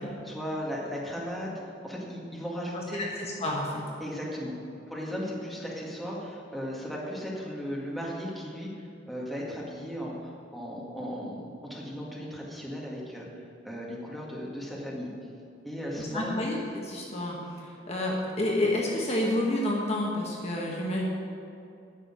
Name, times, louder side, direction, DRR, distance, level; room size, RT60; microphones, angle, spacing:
voice 1, 0.0-1.5 1.8-3.0 4.0-4.5 4.9-15.1 15.6-16.4, equal, ahead, -4 dB, 1.9 m, -36 dB
voice 2, 2.7-3.7 16.0-21.0, left 1 dB, 35° left, -2 dB, 1.4 m, -29 dB
9.8 x 6.7 x 9.0 m, 2.6 s
head